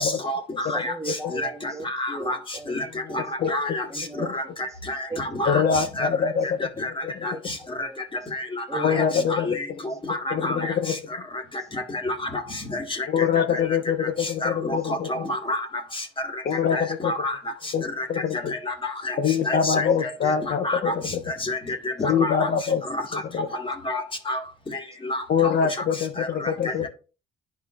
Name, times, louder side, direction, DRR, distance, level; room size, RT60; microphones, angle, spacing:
voice 1, 0.0-0.9 1.3-1.4 1.9-2.4 2.7-2.8 3.1-3.2 3.5-3.8 4.3-6.1 6.8-6.9 7.2-7.9 8.3-8.4 8.7-8.9 9.3-9.5 10.1-10.7 12.0-12.1 12.7-12.8 14.4-15.7 16.7-17.4 18.0-18.1 18.5-19.1 19.5-20.1 20.6-20.9 21.4-21.6 22.2-22.5 23.6-24.0 24.3-24.4 25.0-25.2 26.2-26.3, left 1 dB, 25° left, 1.8 m, -28 dB
voice 2, 0.6-2.8 3.1-3.3 3.9-4.8 5.1-6.0 6.3-6.5 6.8-6.9 7.3-8.3 8.7-10.7 11.6-11.7 13.2-13.3 14.8-14.9 16.5-16.6 18.3-18.4 20.2-20.4 21.7-21.8 26.7-26.8, right 2 dB, 15° right, 0.8 m, -39 dB
voice 3, 5.4-6.4 6.9-7.4 8.8-9.6 10.3-10.9 13.1-15.3 16.4-17.1 17.7-17.8 18.1-18.4 19.2-20.9 22.0-22.8 23.3-23.5 25.3-26.9, left 7 dB, 50° left, 0.7 m, -24 dB
11.0 x 4.7 x 2.4 m
cardioid pair, 90°, 20 cm